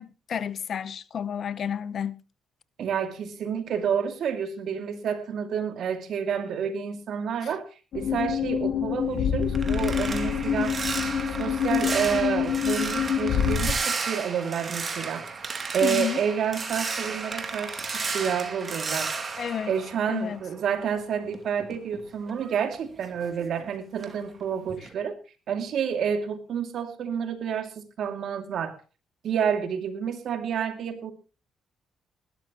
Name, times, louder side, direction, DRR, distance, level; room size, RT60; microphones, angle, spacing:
voice 1, 0.0-2.2 15.8-16.2 17.9-18.1 19.4-19.7 20.1-20.4, left 8 dB, 55° left, 0.8 m, -31 dB
voice 2, 2.8-7.7 7.9-10.8 11.4-15.3 15.7-19.1 19.7-25.2 25.5-28.8 29.2-31.1, right 7 dB, 70° right, 2.4 m, -29 dB
sound 1, 7.9-13.7, left 8 dB, 70° left, 2.6 m, -26 dB
sound 2, 9.0-20.7 21.0-23.7 24.0-24.3 24.7-24.9, right 4 dB, 35° right, 2.6 m, -33 dB
20.0 x 12.5 x 3.0 m
cardioid pair, 90°, 0 cm